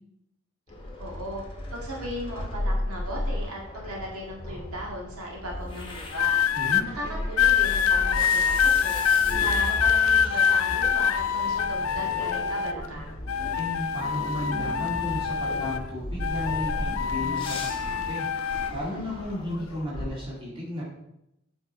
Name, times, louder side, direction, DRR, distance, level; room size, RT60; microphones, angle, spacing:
sound 1, 0.7-20.1, left 1 dB, 25° left, 1.0 m, -35 dB
voice 1, 1.0-1.4 1.7-6.4 6.9-9.0 9.4-13.2, right 1 dB, 85° right, -2 dB, 1.9 m, -37 dB
sound 2, 6.1-6.8 7.4-12.9 13.3-15.9 16.2-18.7 19.5-19.8, left 8 dB, 70° left, 0.4 m, -25 dB
voice 2, 6.5-6.8 13.5-18.3 18.7-20.8, left 1 dB, 25° right, -6 dB, 2.5 m, -34 dB
8.0 x 4.8 x 4.5 m, 0.85 s
head